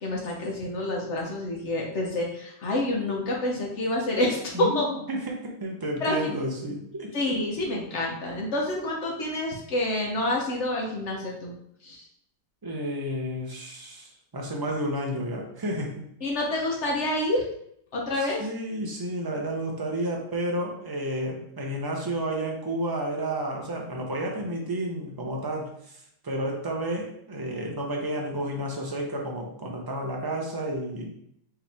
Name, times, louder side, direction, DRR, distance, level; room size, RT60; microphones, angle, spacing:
voice 1, 0.0-4.9 6.0-6.2 7.1-11.5 11.8-12.0 16.2-17.4 17.9-18.5, left 1 dB, 55° left, -1 dB, 1.1 m, -28 dB
voice 2, 4.5-7.1 12.6-16.1 18.2-25.7 26.2-31.2, right 1 dB, 30° right, 0 dB, 0.4 m, -31 dB
4.8 x 3.1 x 3.4 m, 0.71 s
omnidirectional pair, 1.6 m